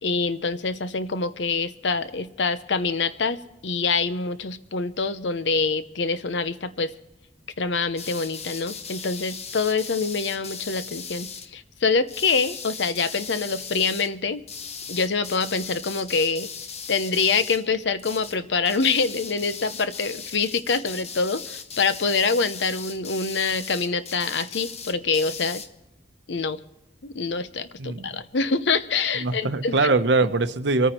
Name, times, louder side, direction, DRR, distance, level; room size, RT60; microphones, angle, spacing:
voice 1, 0.0-6.9 7.6-14.4 14.9-16.5 16.9-25.6 26.3-26.6 27.0-29.8, left 4 dB, 75° left, 12 dB, 0.8 m, -25 dB
sound 1, 7.9-11.5 12.1-14.1 14.5-17.7 18.0-18.4 18.6-25.7, left 6 dB, 35° left, 1.0 m, -38 dB
voice 2, 27.8-28.2 29.1-30.9, right 3 dB, 70° right, 11 dB, 0.9 m, -22 dB
25.5 x 9.3 x 4.4 m, 0.91 s
head